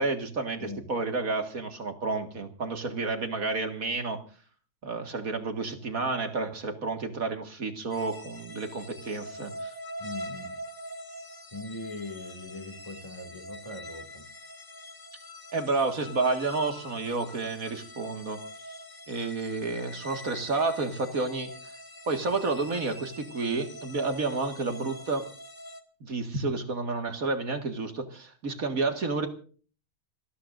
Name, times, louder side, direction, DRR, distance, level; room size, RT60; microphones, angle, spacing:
voice 1, 0.0-4.2 4.8-9.7 15.5-18.4 19.1-21.7 22.1-25.3 26.0-29.3, right 3 dB, 65° right, 5 dB, 2.3 m, -30 dB
sound 1, 7.9-25.8, left 1 dB, 35° left, 1.7 m, -44 dB
voice 2, 10.0-10.6 11.5-14.2, left 2 dB, 20° left, 5 dB, 2.4 m, -41 dB
27.0 x 18.5 x 2.6 m, 0.42 s
omnidirectional pair, 1.6 m